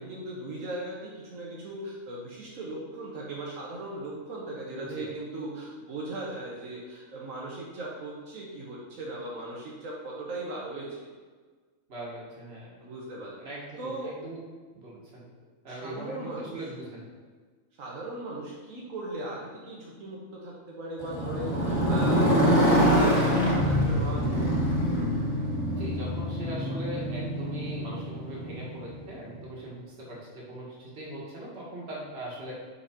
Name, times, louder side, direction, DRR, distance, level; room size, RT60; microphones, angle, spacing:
voice 1, 0.0-11.1 12.8-13.5 13.8-14.2 15.7-16.6 17.8-24.5, right 2 dB, 80° right, -4 dB, 1.4 m, -38 dB
voice 2, 4.7-5.1 11.9-12.8 13.4-14.4 14.7-15.3 15.6-17.1 25.8-32.5, right 1 dB, 50° right, -4 dB, 1.7 m, -40 dB
Motorcycle, 21.0-29.0, equal, 65° left, 1.8 m, -25 dB
5.5 x 4.1 x 4.9 m, 1.4 s
omnidirectional pair, 1.4 m